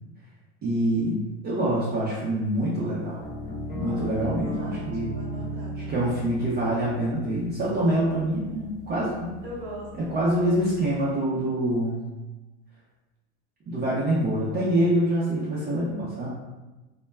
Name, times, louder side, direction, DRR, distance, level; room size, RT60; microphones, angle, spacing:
voice 1, 0.6-3.2 3.7-5.1 5.9-9.3 10.1-12.1 13.7-16.3, right 1 dB, 30° right, -7 dB, 0.6 m, -25 dB
sound 1, 3.2-11.1, equal, 20° left, 0.7 m, -38 dB
voice 2, 3.8-4.9 5.1-6.2 9.4-10.8, equal, 85° right, -4 dB, 0.9 m, -41 dB
2.2 x 2.1 x 3.2 m, 1.1 s
supercardioid pair, 105°, 35 cm